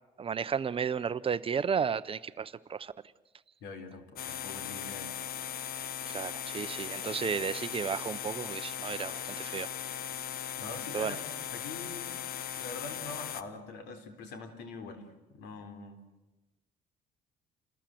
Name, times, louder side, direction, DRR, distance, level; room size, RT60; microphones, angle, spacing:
voice 1, 0.2-2.9 6.1-9.7 10.9-11.2, right 6 dB, 35° right, 0.8 m, -33 dB
voice 2, 3.6-5.2 10.6-12.2 12.6-15.0 15.3-16.0, left 3 dB, 80° left, 3.8 m, -44 dB
sound 1, 4.2-13.4, left 9 dB, 60° left, 1.3 m, -38 dB
28.5 x 20.5 x 7.8 m
cardioid pair, 110°, 17 cm